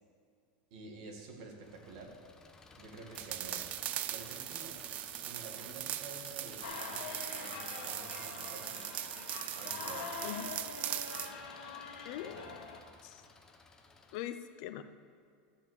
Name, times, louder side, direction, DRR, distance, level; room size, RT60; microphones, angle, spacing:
voice 1, 0.7-2.1 2.8-3.8 4.1-4.8 5.2-8.9 9.5-10.2 12.2-12.6, right 3 dB, 60° right, 1 dB, 2.1 m, -50 dB
Engine, 1.6-14.2, left 3 dB, 15° left, 0.8 m, -56 dB
sound 1, 3.1-11.3, right 13 dB, 35° right, 0.3 m, -40 dB
sound 2, 6.6-12.8, left 5 dB, 85° left, 1.5 m, -44 dB
voice 2, 12.0-12.5 13.0-13.2 14.1-14.8, left 11 dB, 55° left, 10 dB, 0.6 m, -42 dB
13.0 x 5.0 x 8.0 m, 2.3 s
supercardioid pair, 160°, 4 cm